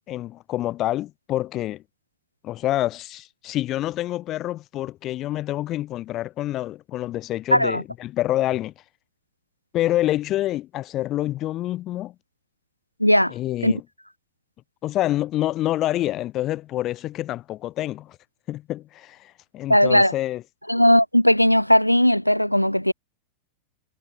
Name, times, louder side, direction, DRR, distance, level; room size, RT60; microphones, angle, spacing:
voice 1, 0.1-1.8 2.4-8.7 9.7-12.1 13.3-13.8 14.8-18.2 18.5-20.4, left 14 dB, 35° left, 0.6 m, -27 dB
voice 2, 7.5-7.8 13.0-13.3 13.6-13.7 19.7-20.1 20.7-22.9, equal, 90° left, 0.8 m, -17 dB
figure-of-eight pair, 90°, 0 cm